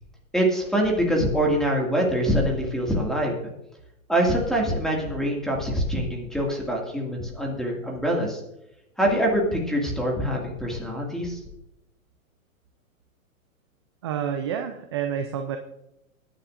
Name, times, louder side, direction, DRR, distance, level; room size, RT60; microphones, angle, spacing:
voice 1, 0.3-3.4 4.1-8.4 9.0-11.4, equal, ahead, -1 dB, 2.1 m, -24 dB
voice 2, 14.0-15.6, right 8 dB, 20° right, 6 dB, 0.3 m, -29 dB
20.5 x 9.9 x 2.5 m, 0.86 s
hypercardioid pair, 135°, 43 cm